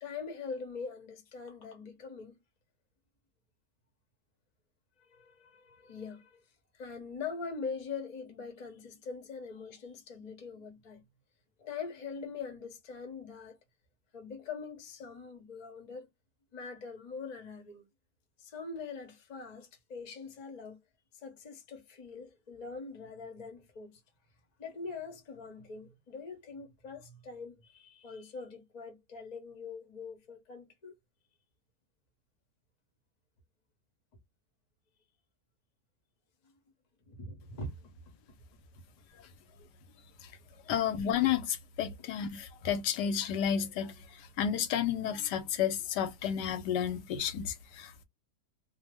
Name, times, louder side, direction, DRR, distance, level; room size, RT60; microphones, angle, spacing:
voice 1, 0.0-2.4 5.1-6.4 6.7-11.0 11.6-13.6 14.1-16.1 16.5-17.8 18.4-20.8 21.2-24.0 24.6-30.9 36.4-36.5 37.0-38.0 38.3-38.4 40.4-40.8, left 4 dB, 35° left, 0.7 m, -43 dB
voice 2, 40.7-43.9 44.4-48.0, left 9 dB, 90° left, 1.2 m, -31 dB
2.7 x 2.1 x 3.3 m
omnidirectional pair, 1.8 m